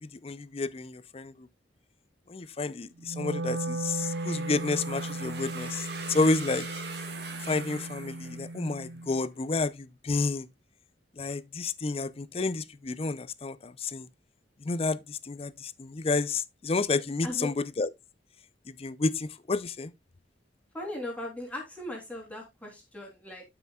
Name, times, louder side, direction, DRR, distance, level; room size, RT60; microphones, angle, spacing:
voice 1, 0.0-1.5 2.3-6.7 7.4-10.5 11.2-14.1 14.6-17.9 18.7-19.9, left 3 dB, 30° left, 0.5 m, -30 dB
Wind instrument woodwind instrument, 3.0-9.2, right 2 dB, 80° right, 0.7 m, -36 dB
sound 1, 3.9-8.9, right 4 dB, 60° right, 2.1 m, -42 dB
voice 2, 20.7-23.4, left 1 dB, 5° left, 3.2 m, -38 dB
12.0 x 5.9 x 2.3 m
head